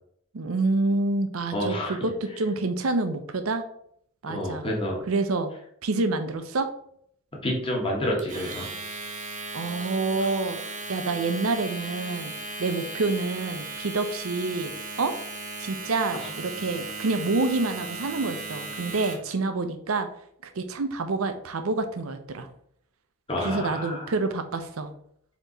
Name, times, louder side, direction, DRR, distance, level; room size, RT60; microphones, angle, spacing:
voice 1, 0.3-3.6 4.2-4.6 5.1-5.5 5.8-6.7 9.5-10.6 10.9-15.1 15.6-20.1 20.4-22.5 23.4-24.9, right 3 dB, 85° right, 9 dB, 0.6 m, -27 dB
voice 2, 1.5-2.1 4.3-5.0 7.4-8.7 10.2-10.3 16.2-16.3 23.3-24.1, left 1 dB, 25° left, -2 dB, 1.2 m, -29 dB
Domestic sounds home sounds, 8.2-19.3, right 3 dB, 40° right, 0.8 m, -37 dB
4.4 x 3.0 x 3.9 m, 0.68 s
head